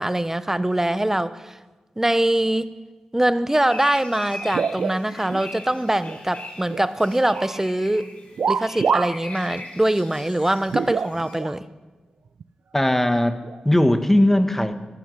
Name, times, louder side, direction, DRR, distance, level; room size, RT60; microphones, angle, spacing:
voice 1, 0.0-1.6 2.0-2.7 3.1-8.1 8.5-11.6, right 1 dB, 15° right, 14 dB, 0.8 m, -23 dB
sound 1, 3.7-11.4, left 2 dB, 55° left, 5.5 m, -40 dB
sound 2, 4.4-5.5 5.9-6.9 7.3-7.6 8.4-9.2 9.6-9.7 10.7-11.5 12.4-12.5 13.4-13.6, right 6 dB, 70° right, 0.4 m, -26 dB
voice 2, 12.7-14.7, left 1 dB, 10° left, 9 dB, 1.2 m, -19 dB
14.0 x 11.0 x 6.3 m, 1.3 s
cardioid pair, 50°, 3 cm